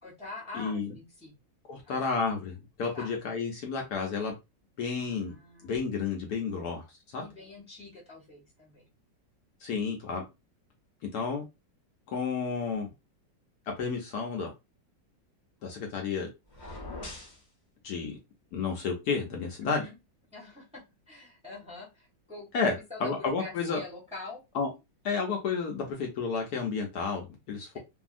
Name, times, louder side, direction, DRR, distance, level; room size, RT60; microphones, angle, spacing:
voice 1, 0.0-1.3 1.8-2.0 2.9-3.1 5.0-5.8 6.5-6.6 7.2-8.9 19.6-19.9 20.3-24.4, left 3 dB, 5° right, 0.7 m, -45 dB
voice 2, 0.5-0.9 1.7-4.4 4.8-5.3 5.6-6.9 7.1-7.2 9.6-10.2 11.1-11.4 12.1-12.9 13.7-14.5 15.6-16.3 17.8-18.2 18.5-19.9 22.5-22.7 23.0-23.8 24.5-24.7 25.0-27.8, left 5 dB, 70° left, 1.1 m, -31 dB
Space Door Open, 16.5-17.4, left 2 dB, 40° left, 0.6 m, -41 dB
2.7 x 2.7 x 2.4 m
omnidirectional pair, 2.0 m